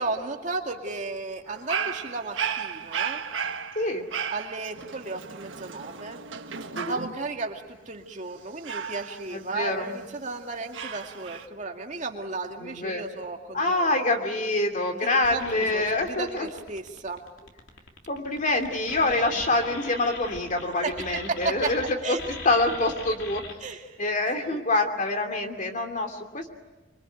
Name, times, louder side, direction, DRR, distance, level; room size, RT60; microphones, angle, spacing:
voice 1, 0.0-3.2 4.3-6.2 6.9-14.0 15.0-17.2 20.8-21.7 22.0-22.2 23.6-24.0 24.5-24.6, right 3 dB, 40° right, 3 dB, 2.2 m, -34 dB
Dog, 1.5-7.3 8.6-10.1 10.7-11.5, right 7 dB, 80° right, 1.4 m, -34 dB
voice 2, 9.3-10.0 12.6-13.0 13.5-16.5 18.1-22.2 22.4-23.4 24.0-26.5, left 2 dB, 40° left, 4 dB, 2.7 m, -26 dB
sound 1, 15.2-21.9 22.2-23.5, left 3 dB, 80° left, 3.0 m, -41 dB
26.0 x 23.5 x 9.2 m, 1.2 s
head